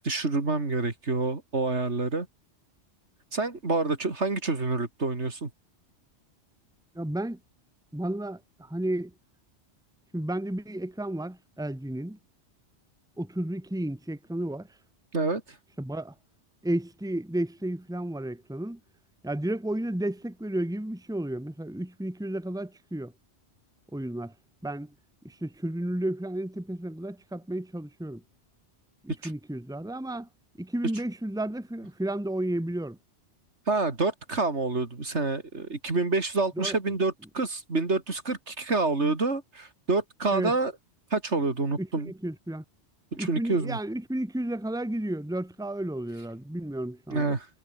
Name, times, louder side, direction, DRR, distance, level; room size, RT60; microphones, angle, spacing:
voice 1, 0.0-2.3 3.3-5.5 15.1-15.4 29.2-29.3 33.7-40.7 41.1-42.1 43.1-43.8 47.1-47.5, right 3 dB, 75° right, 3.4 m, -27 dB
voice 2, 6.9-7.4 7.9-9.1 10.1-12.2 13.2-14.7 15.8-16.1 16.6-18.8 19.2-23.1 23.9-24.3 24.6-24.9 25.2-28.2 29.0-30.3 30.6-33.0 36.6-36.8 40.3-40.5 41.8-42.6 43.2-47.4, right 1 dB, 5° right, 1.5 m, -32 dB
omnidirectional pair, 1.2 m